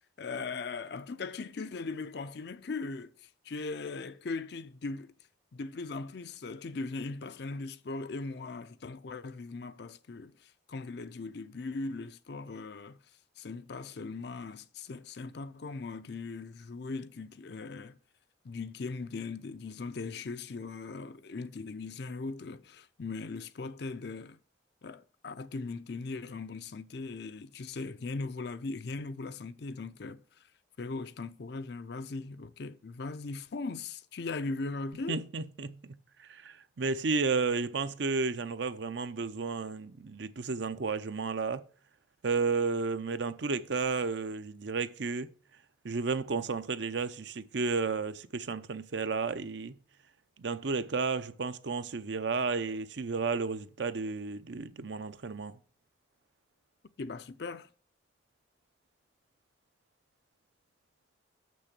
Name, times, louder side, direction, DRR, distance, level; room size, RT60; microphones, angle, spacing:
voice 1, 0.2-5.1 5.5-13.0 13.4-18.0 18.4-24.4 24.8-30.2 30.8-35.2 57.0-57.7, left 3 dB, 55° left, 0.5 m, -39 dB
voice 2, 35.1-41.6 42.2-45.3 45.8-49.7 50.4-55.6, right 4 dB, 60° right, 0.6 m, -32 dB
6.6 x 6.2 x 6.7 m
head